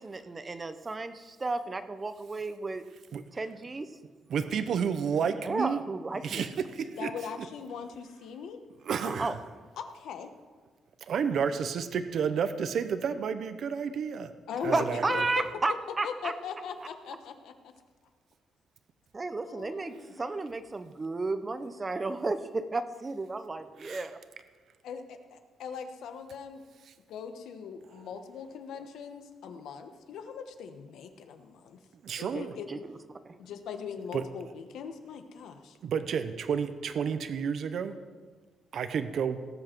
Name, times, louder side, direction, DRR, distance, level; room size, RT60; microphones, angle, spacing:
voice 1, 0.0-2.8 3.3-3.9 5.4-6.4 9.0-9.3 14.7-16.3 19.1-24.2 32.3-32.4 32.7-33.0 33.3-33.4, right 3 dB, 20° right, 11 dB, 0.7 m, -33 dB
voice 2, 4.3-5.8 6.2-7.1 8.8-9.4 11.1-14.3 14.6-15.0 23.8-24.1 32.0-32.5 34.1-34.2 35.8-37.9 38.7-39.4, right 7 dB, 60° right, 10 dB, 0.7 m, -31 dB
voice 3, 7.0-8.6 9.0-9.1 9.8-10.3 14.5-15.2 16.0-17.7 19.4-20.2 24.8-26.6 27.1-31.8 32.2-32.7 33.4-35.8, left 6 dB, 90° left, 7 dB, 1.2 m, -40 dB
18.0 x 7.9 x 4.6 m, 1.5 s
cardioid pair, 150°, 0 cm